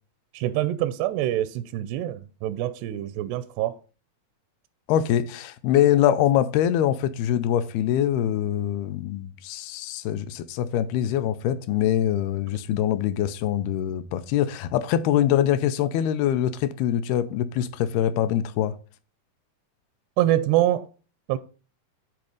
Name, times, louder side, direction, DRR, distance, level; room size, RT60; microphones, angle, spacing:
voice 1, 0.3-3.8 20.2-20.9 21.3-21.4, right 13 dB, 90° right, 2.7 m, -25 dB
voice 2, 4.9-18.7, left 11 dB, 80° left, 2.5 m, -24 dB
11.0 x 4.1 x 5.3 m
omnidirectional pair, 4.7 m